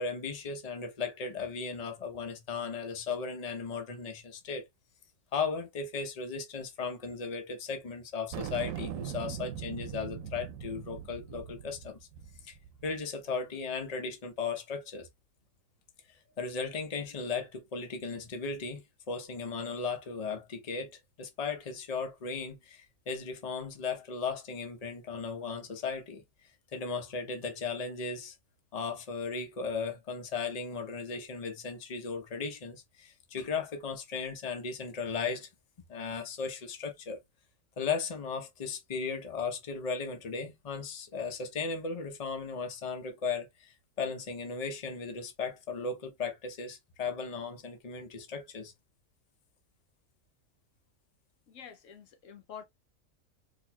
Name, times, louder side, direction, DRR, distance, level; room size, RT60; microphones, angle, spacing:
voice 1, 0.0-4.7 5.3-12.0 12.4-12.6 12.8-15.1 16.4-26.2 26.7-28.3 28.7-35.5 35.9-37.2 37.8-48.7, left 5 dB, 35° left, 0.8 m, -36 dB
sound 1, 8.3-13.0, right 9 dB, 90° right, 1.0 m, -41 dB
voice 2, 51.5-52.6, left 8 dB, 75° left, 1.0 m, -47 dB
4.4 x 2.8 x 2.2 m
omnidirectional pair, 1.4 m